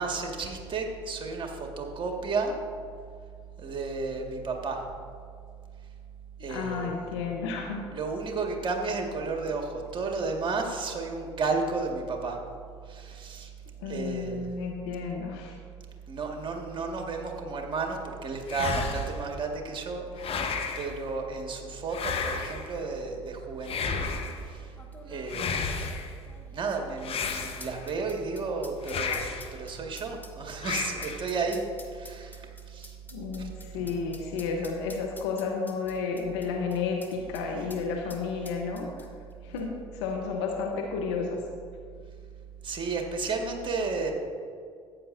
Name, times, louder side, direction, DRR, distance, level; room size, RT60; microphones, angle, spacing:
voice 1, 0.0-2.6 3.6-4.8 6.4-7.1 7.9-12.4 12.9-13.5 13.9-14.5 16.1-20.4 20.8-24.2 24.4-24.7 25.1-25.5 26.5-32.9 33.4-33.5 42.6-44.1, right 4 dB, 35° right, 2 dB, 1.9 m, -32 dB
voice 2, 6.4-7.8 13.8-15.6 33.1-38.9 39.4-41.4, left 5 dB, 70° left, 1 dB, 1.0 m, -32 dB
sound 1, 18.5-19.3 20.2-20.9 21.9-22.7 23.6-24.4 25.3-26.1 27.0-27.9 28.8-29.5 30.6-31.3, left 5 dB, 40° left, 1.2 m, -32 dB
sound 2, 22.7-22.9 23.7-23.8 24.8-37.4 37.7-37.8 38.1-39.3 39.6-39.7, left 2 dB, 10° left, 1.4 m, -49 dB
14.5 x 9.1 x 2.7 m, 2.2 s
hypercardioid pair, 65°, 15 cm